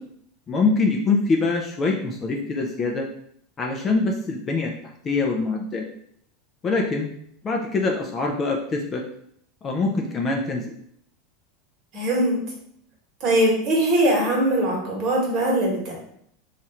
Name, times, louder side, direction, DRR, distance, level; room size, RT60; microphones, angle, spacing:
voice 1, 0.5-3.1 3.6-4.7 5.0-5.8 6.6-7.1 7.4-9.0 9.6-10.6, left 3 dB, 20° left, 1 dB, 0.3 m, -24 dB
voice 2, 11.9-12.4 13.2-15.9, right 1 dB, 35° right, -2 dB, 1.2 m, -21 dB
3.0 x 2.4 x 4.2 m, 0.68 s
supercardioid pair, 165°, 0 cm